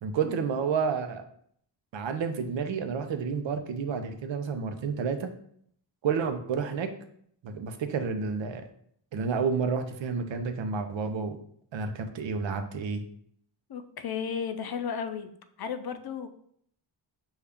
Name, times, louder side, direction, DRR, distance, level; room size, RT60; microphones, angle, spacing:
voice 1, 0.0-1.2 1.9-5.3 6.0-6.9 7.4-8.7 9.1-11.4 11.7-13.0, right 5 dB, 85° right, 7 dB, 0.6 m, -30 dB
voice 2, 13.7-15.3 15.6-16.3, left 7 dB, 60° left, 9 dB, 0.5 m, -34 dB
5.4 x 2.3 x 3.5 m, 0.65 s
wide cardioid pair, 110°, 43 cm